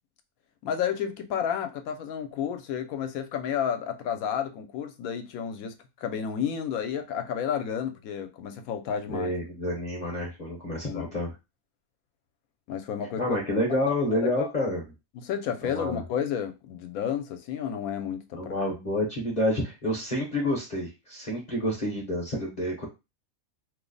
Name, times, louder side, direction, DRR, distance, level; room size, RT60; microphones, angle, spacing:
voice 1, 0.6-9.3 10.9-11.1 12.7-13.2 14.1-14.5 15.2-18.5 21.6-21.7, left 8 dB, 80° left, 1.0 m, -31 dB
voice 2, 9.1-11.3 13.2-14.8 15.6-16.0 18.3-22.9, left 1 dB, 40° left, 0.7 m, -29 dB
3.0 x 2.0 x 3.8 m
omnidirectional pair, 1.5 m